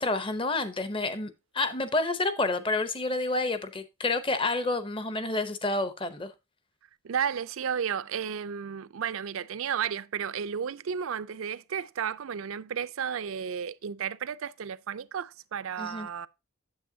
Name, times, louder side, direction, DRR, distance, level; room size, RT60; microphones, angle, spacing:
voice 1, 0.0-6.3 15.8-16.1, left 2 dB, 25° left, 0.7 m, -29 dB
voice 2, 7.0-16.3, right 7 dB, 75° right, 0.4 m, -33 dB
8.5 x 7.6 x 2.7 m
head